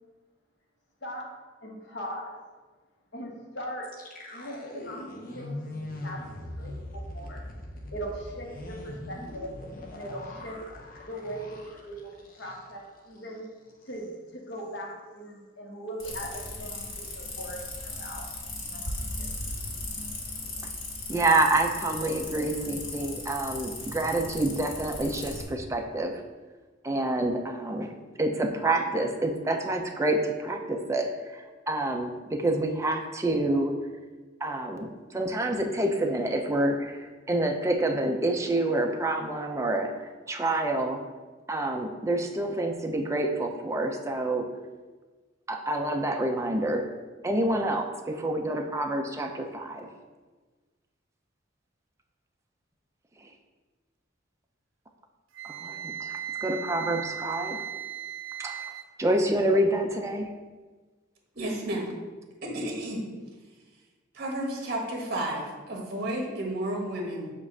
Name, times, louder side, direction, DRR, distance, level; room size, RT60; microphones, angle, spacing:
voice 1, 1.6-2.4 3.1-3.9 4.3-5.6 6.0-7.4 7.9-9.5 9.9-10.6 11.1-12.1 12.4-13.4 13.9-18.2 18.6-19.3, equal, 65° left, -1 dB, 1.1 m, -40 dB
sound 1, 3.8-12.9 13.2-13.3 13.7-14.1, left 1 dB, 45° left, 0.7 m, -41 dB
sound 2, 16.0-25.4, left 2 dB, 85° left, 1.2 m, -37 dB
voice 2, 21.1-26.1 26.8-27.9 28.2-33.7 34.4-39.9 40.3-41.0 41.5-44.5 45.5-46.9 47.2-49.9 55.4-57.6 58.4-58.6 59.0-60.3, right 1 dB, 15° right, 4 dB, 0.4 m, -27 dB
Wind instrument woodwind instrument, 55.3-58.9, right 9 dB, 85° right, 0.5 m, -37 dB
voice 3, 61.3-61.9 62.4-63.0 64.1-67.3, right 1 dB, 50° right, 0 dB, 1.3 m, -32 dB
7.2 x 2.5 x 5.3 m, 1.3 s
head